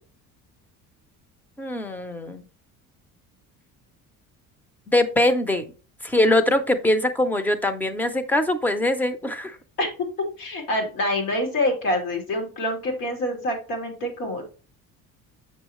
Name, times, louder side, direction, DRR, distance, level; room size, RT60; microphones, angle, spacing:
voice 1, 1.6-2.4 4.9-5.6 6.0-9.6, left 1 dB, 5° left, 11 dB, 0.4 m, -22 dB
voice 2, 10.4-14.5, left 1 dB, 90° left, 2 dB, 3.2 m, -26 dB
7.1 x 6.1 x 3.0 m, 0.35 s
cardioid pair, 175°, 35 cm